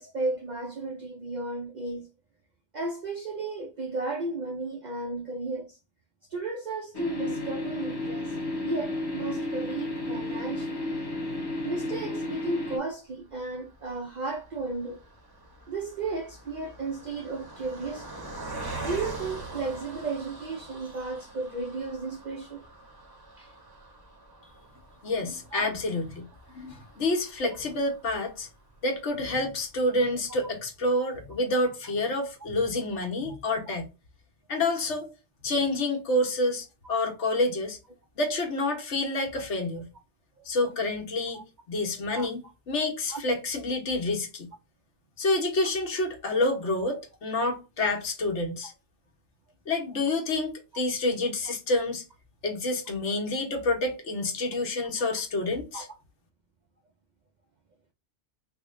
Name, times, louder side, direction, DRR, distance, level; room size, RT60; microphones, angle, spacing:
voice 1, 0.0-2.1 2.7-5.8 6.3-8.4 8.6-10.8 11.6-15.0 15.7-18.3 18.8-22.7 23.4-23.5 25.5-25.7 41.3-41.4 42.1-42.3 43.1-43.2 55.7-55.8, right 3 dB, 60° right, 0.5 m, -34 dB
sound 1, 6.9-12.8, left 2 dB, 25° left, 0.7 m, -32 dB
Car passing by, 13.3-28.8 29.3-29.4 29.7-29.9, right 2 dB, 25° right, 0.7 m, -44 dB
voice 2, 25.0-26.3 26.5-28.5 28.8-33.9 34.5-35.1 35.4-37.8 38.2-39.9 40.4-42.4 42.7-44.5 45.2-48.7 49.7-52.0 52.4-55.9, left 2 dB, 70° left, 1.3 m, -28 dB
3.5 x 2.1 x 3.5 m
omnidirectional pair, 1.2 m